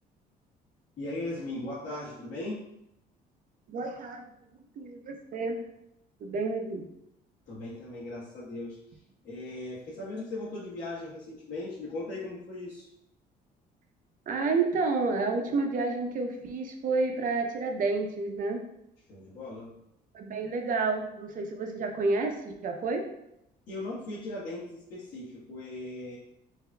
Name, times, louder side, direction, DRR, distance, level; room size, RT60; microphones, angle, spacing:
voice 1, 1.0-2.6 7.5-9.0 9.2-12.9 19.1-19.7 23.7-26.2, left 2 dB, 55° left, -9 dB, 1.4 m, -38 dB
voice 2, 3.7-4.2 4.8-5.6 6.2-6.8 14.3-18.6 20.1-23.1, right 3 dB, 50° right, 4 dB, 0.8 m, -30 dB
6.8 x 2.7 x 2.3 m, 0.80 s
cardioid pair, 110°, 17 cm